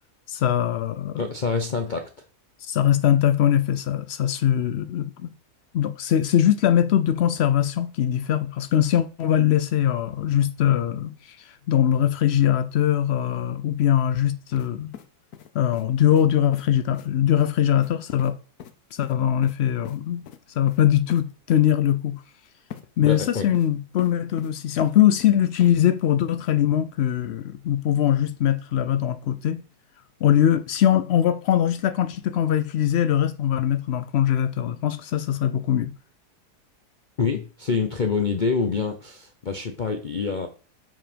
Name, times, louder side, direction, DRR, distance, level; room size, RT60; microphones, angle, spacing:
voice 1, 0.3-1.2 2.6-5.3 5.7-14.9 15.5-18.4 18.9-20.2 20.6-22.2 23.0-29.6 30.2-35.9, left 10 dB, 90° left, 0.5 m, -22 dB
voice 2, 1.2-2.1 23.0-23.5 37.2-40.5, left 5 dB, 40° left, 0.7 m, -26 dB
sound 1, 14.5-14.7 14.9-15.9 16.1-16.3 16.5-16.6 16.9-17.1 17.4-17.5 17.8-17.9 18.2-18.3 18.6-18.7 19.0-19.5 19.8-20.0 20.2-20.4 20.7-20.8 21.1-21.2 21.5-21.6 22.7-22.8 23.1-23.7 24.0-24.5 24.8-25.3 25.6-25.7, left 9 dB, 70° left, 1.3 m, -41 dB
7.3 x 5.6 x 5.1 m
omnidirectional pair, 1.7 m